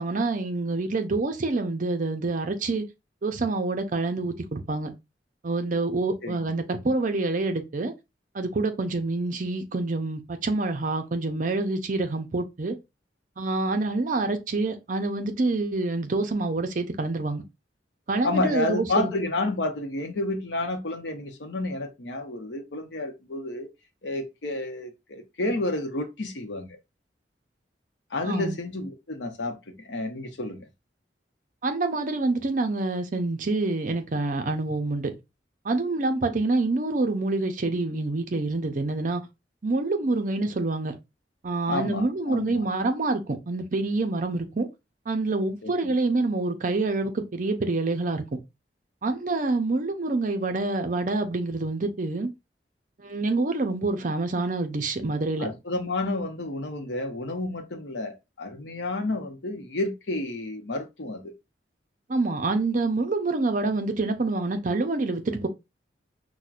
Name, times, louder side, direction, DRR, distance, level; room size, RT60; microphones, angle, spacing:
voice 1, 0.0-2.8 3.2-4.9 5.4-7.9 8.3-12.8 13.4-17.4 18.1-19.1 28.2-28.6 31.6-35.1 35.6-39.2 39.6-40.9 41.4-44.7 45.1-48.2 49.0-52.3 53.0-55.5 62.1-65.5, right 3 dB, 45° right, 0.6 m, -27 dB
voice 2, 18.2-23.7 24.0-26.8 28.1-30.7 41.7-42.6 45.6-45.8 55.4-61.3, left 2 dB, 80° left, 0.8 m, -30 dB
5.9 x 2.1 x 2.4 m
head